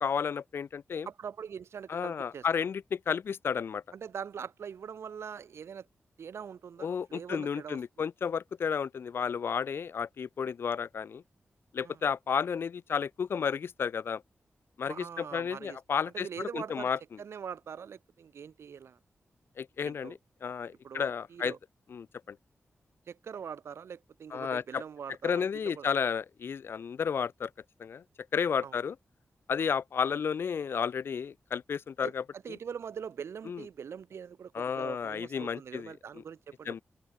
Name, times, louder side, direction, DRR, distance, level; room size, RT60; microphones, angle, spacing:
voice 1, 0.0-1.1 1.9-3.8 6.8-11.2 11.7-14.2 14.8-17.0 19.6-21.5 21.9-22.4 24.3-24.8 25.2-27.5 27.8-28.0 28.3-29.0 29.5-32.2 33.5-33.6 34.5-35.9 36.7-36.8, left 6 dB, 65° left, 0.5 m, -32 dB
voice 2, 1.1-2.7 3.9-5.9 6.2-7.8 11.8-12.0 14.9-15.8 16.1-16.9 17.2-19.0 19.8-20.2 20.8-21.6 23.1-25.9 28.6-28.8 32.0-36.8, right 7 dB, 90° right, 1.2 m, -43 dB
open air
wide cardioid pair, 165°, 4 cm